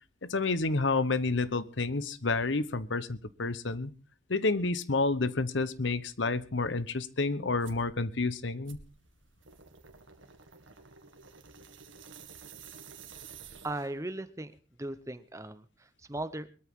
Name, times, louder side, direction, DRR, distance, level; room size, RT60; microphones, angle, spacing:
voice 1, 0.2-3.9 4.3-8.8, left 3 dB, 70° left, 15 dB, 1.0 m, -29 dB
sound 1, 7.6-7.9 8.7-14.1, right 6 dB, 85° right, 2.0 m, -51 dB
voice 2, 13.6-14.5 14.8-16.5, right 2 dB, 15° right, 12 dB, 0.9 m, -37 dB
22.0 x 13.5 x 3.7 m, 0.37 s
head